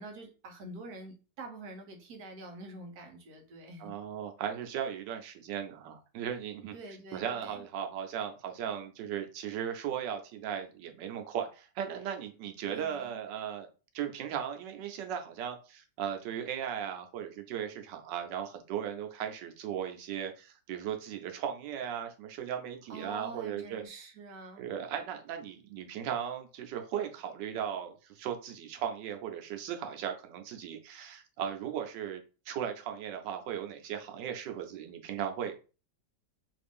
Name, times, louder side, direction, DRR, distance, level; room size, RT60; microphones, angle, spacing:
voice 1, 0.0-3.9 6.7-7.6 12.7-13.2 22.9-24.7, right 2 dB, 65° right, 3 dB, 1.3 m, -46 dB
voice 2, 3.8-6.7 7.1-13.7 13.9-23.8 24.6-35.6, right 9 dB, 90° right, 5 dB, 1.3 m, -37 dB
3.2 x 2.5 x 3.5 m, 0.33 s
omnidirectional pair, 1.9 m